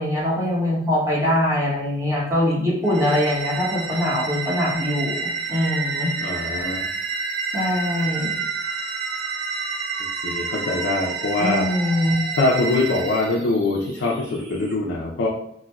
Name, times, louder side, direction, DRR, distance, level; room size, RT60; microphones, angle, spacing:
voice 1, 0.0-6.1 7.5-8.3 11.4-12.2, left 1 dB, 15° right, -6 dB, 0.9 m, -22 dB
sound 1, 2.9-13.4, right 5 dB, 80° right, 0.4 m, -29 dB
sound 2, 4.7-14.7, right 1 dB, 65° right, 0.9 m, -37 dB
voice 2, 6.2-6.8 10.2-11.7 12.4-15.3, left 2 dB, 80° left, -3 dB, 0.5 m, -23 dB
4.2 x 2.1 x 2.3 m, 0.73 s
head